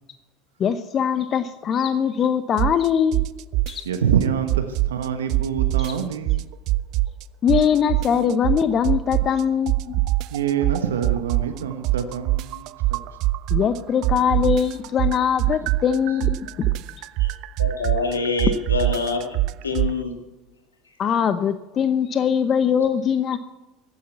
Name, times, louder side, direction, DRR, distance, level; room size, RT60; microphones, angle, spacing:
voice 1, 0.6-3.3 3.7-3.8 5.8-6.0 7.4-10.0 13.5-16.7 21.0-23.4, left 8 dB, 40° left, 12 dB, 0.9 m, -22 dB
sound 1, 2.6-2.9 3.1-5.0 5.3-7.2 7.5-9.4 9.7-13.8 14.0-19.9, right 18 dB, 55° right, 0.4 m, -23 dB
voice 2, 3.8-6.5 10.3-12.7, right 8 dB, 80° right, 7 dB, 1.1 m, -26 dB
voice 3, 17.6-20.2, left 4 dB, 85° left, 4 dB, 2.1 m, -26 dB
15.0 x 10.0 x 8.1 m, 1.0 s
hypercardioid pair, 75°, 0 cm